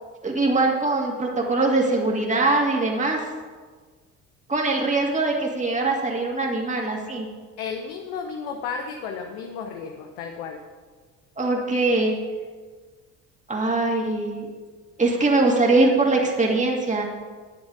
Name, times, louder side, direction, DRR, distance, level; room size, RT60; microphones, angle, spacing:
voice 1, 0.2-3.2 4.5-7.3 11.4-12.2 13.5-14.5 15.0-17.1, right 2 dB, 15° right, -1 dB, 2.3 m, -22 dB
voice 2, 7.6-10.6, left 6 dB, 65° left, 4 dB, 1.1 m, -33 dB
10.0 x 9.8 x 4.9 m, 1.5 s
figure-of-eight pair, 55°, 47 cm